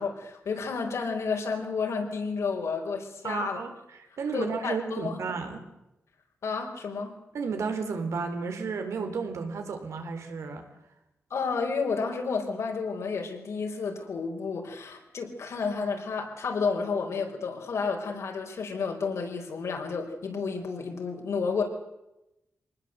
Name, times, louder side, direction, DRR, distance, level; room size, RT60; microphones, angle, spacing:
voice 1, 0.0-3.6 4.3-5.3 6.4-7.1 11.3-21.6, left 5 dB, 75° left, 2 dB, 4.9 m, -31 dB
voice 2, 3.2-3.7 4.2-5.6 7.3-10.6, right 5 dB, 85° right, 6 dB, 3.8 m, -32 dB
25.5 x 19.5 x 8.0 m, 0.91 s
wide cardioid pair, 170°, 5 cm